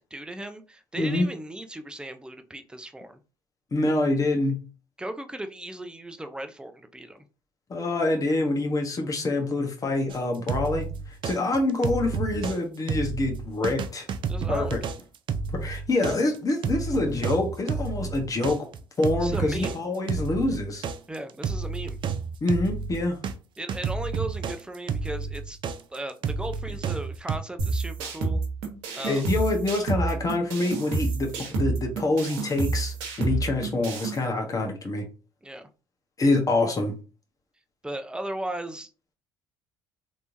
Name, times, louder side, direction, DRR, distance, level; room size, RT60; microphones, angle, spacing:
voice 1, 0.1-3.2 5.0-7.2 14.3-14.8 19.2-19.8 21.1-22.0 23.6-25.6 25.9-28.4 28.9-29.3 35.4-35.7 37.8-38.9, right 1 dB, 10° right, 0.6 m, -36 dB
voice 2, 1.0-1.3 3.7-4.6 7.7-10.9 11.2-14.1 14.5-14.8 15.5-18.7 19.0-20.8 22.4-23.2 29.1-35.0 36.2-36.9, left 2 dB, 35° left, 1.2 m, -26 dB
sound 1, 10.1-12.6 12.9-23.3 23.7-27.4, right 5 dB, 50° right, 0.5 m, -31 dB
sound 2, 27.6-34.2, right 3 dB, 80° right, 1.1 m, -29 dB
3.4 x 3.0 x 2.7 m
hypercardioid pair, 60°, 10 cm